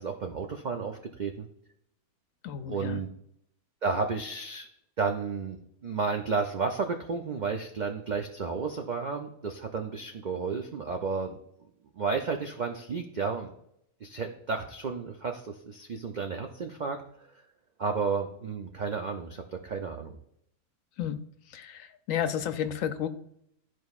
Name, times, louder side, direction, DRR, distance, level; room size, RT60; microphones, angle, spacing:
voice 1, 0.0-1.5 2.7-3.1 3.8-4.7 5.0-11.4 12.0-13.5 14.0-17.0 17.8-20.1, right 5 dB, 85° right, 4 dB, 0.4 m, -32 dB
voice 2, 2.4-3.0 21.0-21.2 21.5-23.1, left 9 dB, 70° left, 10 dB, 0.9 m, -32 dB
12.5 x 4.6 x 2.4 m, 0.73 s
omnidirectional pair, 1.6 m